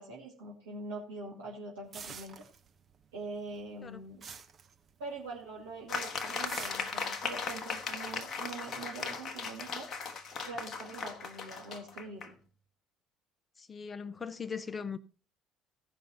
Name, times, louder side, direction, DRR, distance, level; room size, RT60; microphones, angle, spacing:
voice 1, 0.0-2.4 3.1-4.3 5.0-9.9 10.4-12.3, right 3 dB, 70° right, 2.4 m, -44 dB
sound 1, 1.9-3.1 3.3-5.4 5.7-6.0 6.5-8.4, right 6 dB, 35° right, 1.2 m, -47 dB
sound 2, 5.9-12.3, left 5 dB, 40° left, 1.1 m, -38 dB
voice 2, 13.6-15.0, left 6 dB, 25° left, 0.7 m, -39 dB
16.0 x 5.4 x 4.2 m
figure-of-eight pair, 55°, 0 cm